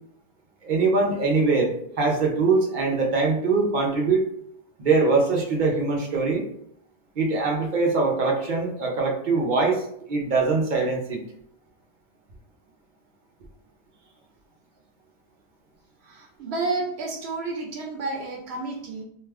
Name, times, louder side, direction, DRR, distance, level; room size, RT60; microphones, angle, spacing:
voice 1, 0.6-4.2 4.8-6.5 7.2-11.2, right 3 dB, 55° right, 0 dB, 0.8 m, -22 dB
voice 2, 16.0-19.0, right 3 dB, 80° right, 0 dB, 0.8 m, -31 dB
2.6 x 2.3 x 3.3 m, 0.69 s
omnidirectional pair, 1.1 m